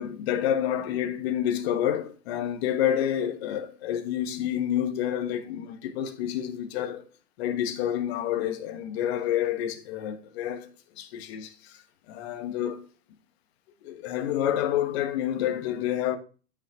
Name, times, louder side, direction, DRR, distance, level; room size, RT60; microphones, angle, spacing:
voice 1, 0.0-7.0 7.4-10.7 11.0-11.8 12.1-12.8 13.8-16.2, left 10 dB, 40° left, 1.4 m, -28 dB
12.5 x 6.0 x 2.9 m
hypercardioid pair, 130°, 47 cm